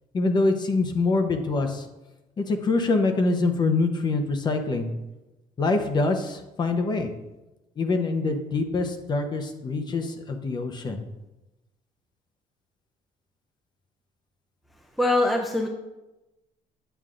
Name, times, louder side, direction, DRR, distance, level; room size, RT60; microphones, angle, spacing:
voice 1, 0.1-1.9 2.4-4.9 5.6-7.1 7.8-11.0, left 3 dB, 30° left, 5 dB, 0.8 m, -25 dB
voice 2, 15.0-15.7, left 2 dB, ahead, 2 dB, 0.4 m, -22 dB
9.0 x 8.1 x 2.5 m, 1.0 s
cardioid pair, 165°, 15 cm